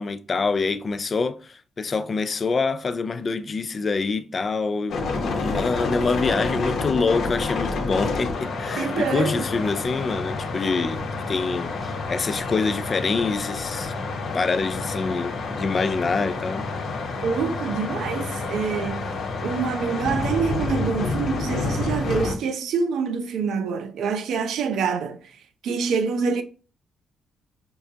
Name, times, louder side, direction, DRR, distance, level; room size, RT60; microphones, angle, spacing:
voice 1, 0.0-13.9 14.3-16.7, left 4 dB, 40° left, 0.4 m, -26 dB
sound 1, 4.9-22.4, left 3 dB, 65° left, 0.9 m, -29 dB
voice 2, 8.8-9.5 17.2-19.1 19.4-25.4 25.6-26.4, right 5 dB, 75° right, 0.5 m, -26 dB
5.7 x 2.3 x 2.7 m
cardioid pair, 90°, 0 cm